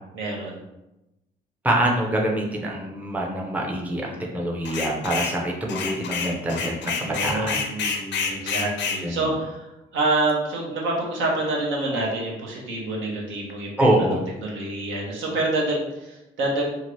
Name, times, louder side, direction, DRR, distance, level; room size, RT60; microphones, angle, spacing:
voice 1, 0.1-0.6 7.1-9.6 9.9-13.7 14.0-16.7, right 2 dB, 75° right, -3 dB, 0.9 m, -27 dB
voice 2, 1.6-7.6 9.0-9.3 13.8-14.2, right 1 dB, 10° right, -1 dB, 0.5 m, -25 dB
sound 1, 4.6-5.4 5.7-9.0, left 5 dB, 65° left, 0.5 m, -28 dB
2.8 x 2.5 x 3.0 m, 0.93 s
cardioid pair, 90°, 20 cm